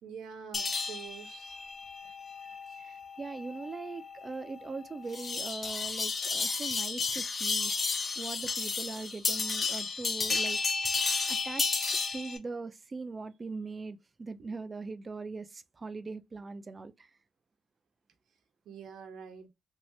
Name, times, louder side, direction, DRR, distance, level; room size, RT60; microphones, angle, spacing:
voice 1, 0.0-1.6 18.7-19.5, right 7 dB, 75° right, 0.9 m, -46 dB
sound 1, 0.5-12.4, left 4 dB, 40° left, 0.7 m, -33 dB
voice 2, 2.8-11.0 11.3-11.8 12.1-17.1, right 4 dB, 30° right, 0.4 m, -41 dB
2.7 x 2.5 x 3.1 m
cardioid pair, 90°, 0 cm